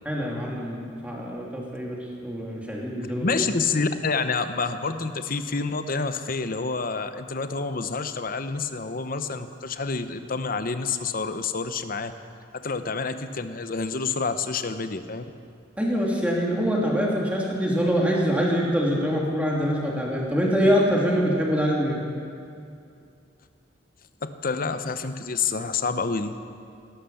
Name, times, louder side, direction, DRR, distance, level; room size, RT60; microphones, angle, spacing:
voice 1, 0.0-2.0 2.2-3.4 15.8-22.0, equal, 10° right, -3 dB, 2.9 m, -24 dB
voice 2, 3.2-12.1 12.5-15.2 24.2-26.3, left 4 dB, 50° left, 10 dB, 0.8 m, -28 dB
17.0 x 12.0 x 7.1 m, 2.5 s
head